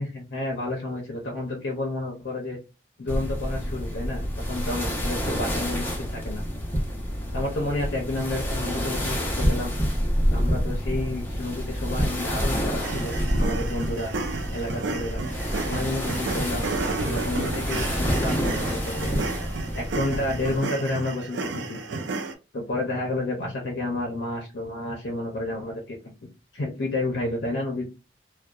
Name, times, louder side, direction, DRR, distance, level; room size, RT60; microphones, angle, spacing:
voice 1, 0.0-2.6 3.0-6.4 7.3-9.7 10.3-14.1 14.5-15.2 15.6-16.7 17.0-19.2 19.7-21.8 22.5-26.0 26.5-27.8, left 2 dB, 65° left, 0 dB, 0.6 m, -30 dB
sound 1, 3.1-20.6, equal, 10° left, 0.6 m, -28 dB
sound 2, 12.8-22.3, right 3 dB, 80° right, 0.4 m, -32 dB
2.6 x 2.1 x 2.3 m, 0.29 s
head